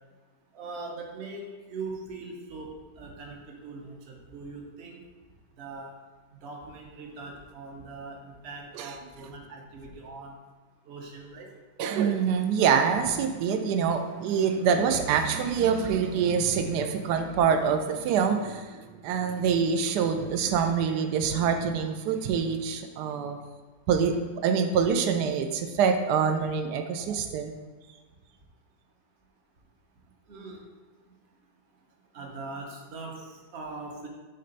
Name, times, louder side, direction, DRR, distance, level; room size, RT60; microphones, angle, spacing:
voice 1, 0.5-5.0 5.6-5.9 6.4-10.3 10.8-11.5 30.3-30.6 32.1-34.1, right 3 dB, 45° right, 1 dB, 1.0 m, -41 dB
voice 2, 11.8-23.4 23.9-27.6, right 6 dB, 70° right, 6 dB, 1.1 m, -25 dB
6.6 x 3.2 x 5.3 m, 1.3 s
omnidirectional pair, 2.0 m